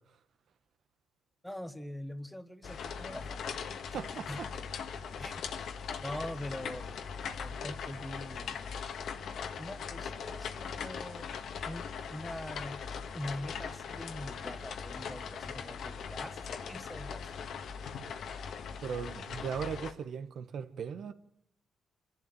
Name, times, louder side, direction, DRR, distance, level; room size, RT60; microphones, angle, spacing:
voice 1, 1.4-4.4 5.2-5.4 6.0-6.9 7.2-8.6 9.6-11.3 11.6-12.8 13.1-17.6, left 1 dB, 5° left, 1.4 m, -43 dB
sound 1, 2.6-19.9, left 6 dB, 65° left, 1.7 m, -40 dB
voice 2, 3.9-4.5 18.8-21.1, right 7 dB, 65° right, 1.3 m, -38 dB
25.5 x 12.0 x 9.3 m
cardioid pair, 90°, 0 cm